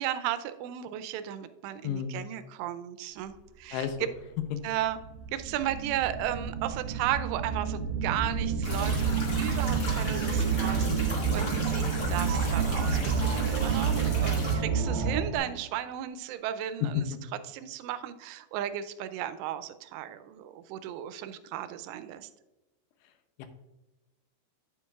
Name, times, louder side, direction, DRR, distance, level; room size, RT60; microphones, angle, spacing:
voice 1, 0.0-4.1 4.6-5.0 5.3-22.3, right 12 dB, 85° right, 11 dB, 2.7 m, -35 dB
voice 2, 1.8-2.2 3.7-3.9 23.4-23.5, left 8 dB, 85° left, 9 dB, 2.8 m, -32 dB
sound 1, 4.1-4.2 4.8-15.4, right 6 dB, 30° right, 1.8 m, -29 dB
sound 2, 8.6-14.6, left 2 dB, 40° left, 1.6 m, -37 dB
sound 3, 10.2-15.4, right 4 dB, 55° right, 2.3 m, -40 dB
9.2 x 8.3 x 2.3 m, 1.0 s
omnidirectional pair, 4.9 m